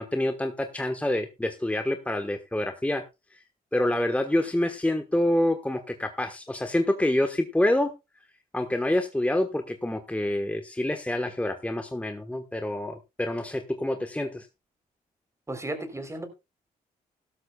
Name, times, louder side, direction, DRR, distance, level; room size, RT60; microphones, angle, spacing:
voice 1, 0.0-3.0 3.7-7.9 8.5-14.4, left 1 dB, 10° left, 6 dB, 1.3 m, -27 dB
voice 2, 15.5-16.3, right 1 dB, 20° right, 8 dB, 3.6 m, -34 dB
16.0 x 12.5 x 2.3 m, 0.25 s
supercardioid pair, 65°, 16 cm